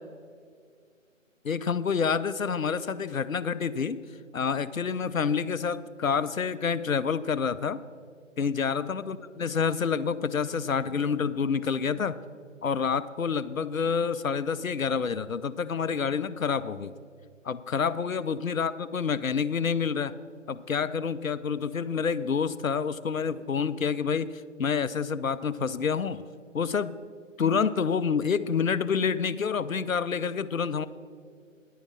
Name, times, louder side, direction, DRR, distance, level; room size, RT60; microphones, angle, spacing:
voice 1, 1.4-4.0 4.3-7.8 8.4-12.2 12.6-16.9 17.4-20.1 20.5-26.2 26.5-27.0 27.4-30.9, left 6 dB, 90° left, 15 dB, 0.7 m, -28 dB
10.5 x 9.3 x 6.2 m, 2.2 s
figure-of-eight pair, 150°, 39 cm